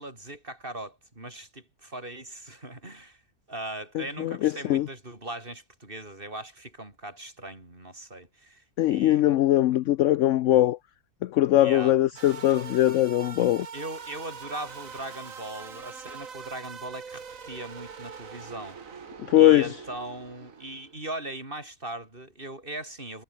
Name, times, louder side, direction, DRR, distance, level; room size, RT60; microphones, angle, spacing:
voice 1, 0.0-3.2 3.5-9.4 10.3-10.4 11.6-12.0 13.7-19.1 19.3-23.2, right 1 dB, 35° right, 5.1 m, -39 dB
voice 2, 3.9-4.9 8.8-10.8 11.2-13.7 19.3-19.8, left 14 dB, 70° left, 0.8 m, -21 dB
sound 1, 12.2-21.0, right 6 dB, 60° right, 2.1 m, -43 dB
omnidirectional pair, 1.6 m